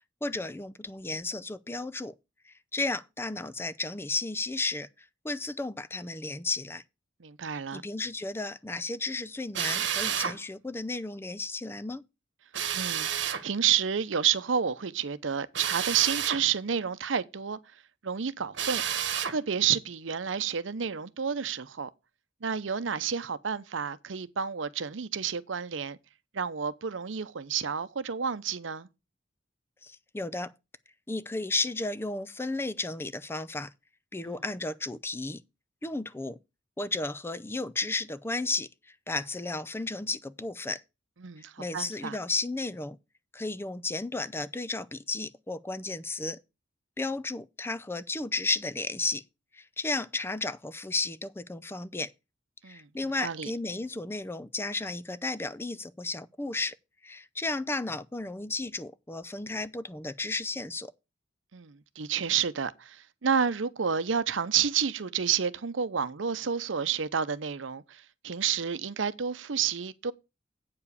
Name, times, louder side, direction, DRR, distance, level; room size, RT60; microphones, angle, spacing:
voice 1, 0.2-2.1 2.5-4.9 5.2-6.8 7.5-12.0 29.8-30.5 31.1-33.7 34.1-35.4 35.8-36.4 36.8-38.7 39.1-40.8 41.6-43.0 43.3-46.4 47.0-49.2 49.5-52.1 52.6-56.7 57.0-60.9, left 3 dB, 10° left, 0.4 m, -33 dB
voice 2, 7.2-7.8 12.7-17.6 18.0-18.8 19.3-21.9 22.4-26.0 26.3-28.9 34.2-34.4 41.2-42.2 52.6-52.9 53.2-53.5 61.5-70.1, right 7 dB, 85° right, 0.7 m, -30 dB
Drill, 9.5-10.4 12.5-13.4 15.5-16.4 18.5-19.4, right 9 dB, 70° right, 1.2 m, -30 dB
8.6 x 4.9 x 6.8 m
head